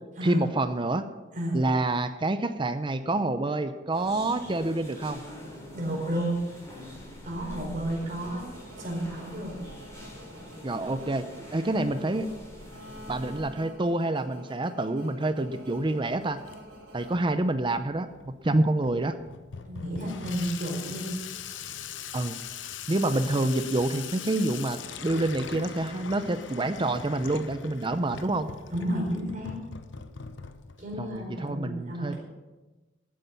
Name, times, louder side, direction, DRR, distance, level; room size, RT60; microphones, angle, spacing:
voice 1, 0.2-1.1 1.5-5.2 10.6-11.2 11.5-12.3 13.1-16.4 16.9-18.1 18.4-19.2 22.1-22.4 22.9-28.5 31.0-32.2, right 2 dB, 25° right, 10 dB, 0.6 m, -27 dB
voice 2, 1.3-1.6 5.7-6.4 6.7-6.8 7.2-8.4 8.8-9.5 11.9-12.1 19.6-21.1 23.2-23.3 28.7-29.5 30.8-32.2, right 1 dB, 45° right, -1 dB, 4.5 m, -32 dB
sound 1, 3.9-13.4, equal, 15° left, 3.8 m, -45 dB
sound 2, 7.4-17.8, equal, 85° right, 4.2 m, -49 dB
Water tap faucet / Sink (filling or washing), 15.5-31.5, left 7 dB, 70° left, 0.8 m, -42 dB
13.5 x 9.3 x 5.8 m, 1.2 s
head